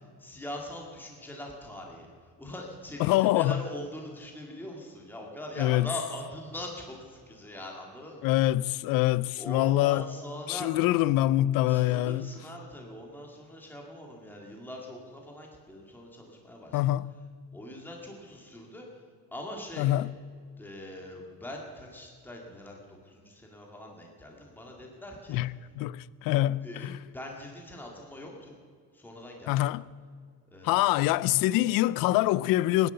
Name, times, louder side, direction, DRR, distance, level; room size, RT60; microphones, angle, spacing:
voice 1, 0.2-8.3 9.4-10.7 11.7-16.8 17.5-18.9 19.3-20.0 20.6-25.4 26.6-26.9 27.1-28.6 28.9-29.6 30.5-31.0, left 1 dB, 5° left, 2.1 m, -42 dB
voice 2, 3.0-3.6 5.6-5.9 8.2-10.1 10.5-12.3 16.7-17.1 19.8-20.1 25.3-25.5 25.7-27.0 29.5-29.8 30.6-32.9, left 15 dB, 70° left, 0.5 m, -25 dB
19.0 x 10.5 x 6.8 m
cardioid pair, 150°, 36 cm